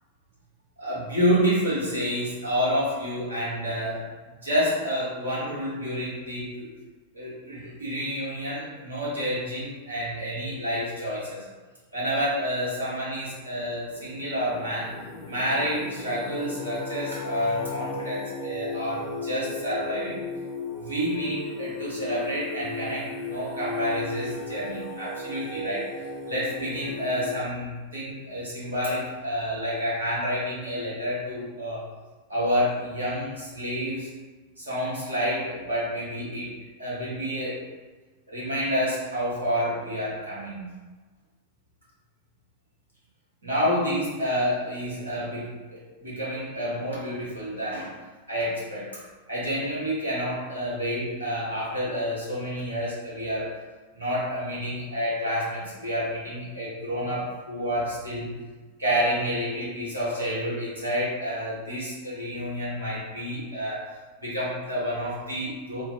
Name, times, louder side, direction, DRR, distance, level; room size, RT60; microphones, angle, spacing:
voice 1, 0.8-4.1 4.4-6.7 7.1-11.4 11.9-14.9 15.3-20.2 20.8-25.9 26.3-31.8 32.3-34.1 34.6-36.5 36.8-37.6 38.3-40.7 43.4-47.9 48.3-48.9 49.3-53.5 53.9-58.4 58.8-63.9 64.2-65.8, equal, 80° right, -8 dB, 1.2 m, -29 dB
Singing, 13.5-27.3, left 2 dB, 5° left, 1.1 m, -36 dB
2.9 x 2.5 x 2.7 m, 1.3 s
figure-of-eight pair, 90°, 0 cm